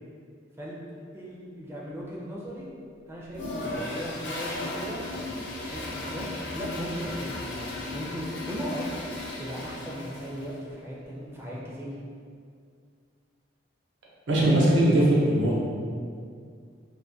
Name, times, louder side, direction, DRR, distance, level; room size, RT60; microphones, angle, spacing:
voice 1, 0.6-2.7 3.1-8.9 9.4-12.0, equal, 15° right, -5 dB, 0.4 m, -37 dB
Toilet flush, 3.3-10.6, left 2 dB, 70° left, 0.4 m, -36 dB
voice 2, 14.3-15.5, right 1 dB, 75° right, -5 dB, 0.6 m, -20 dB
2.2 x 2.1 x 2.6 m, 2.2 s
head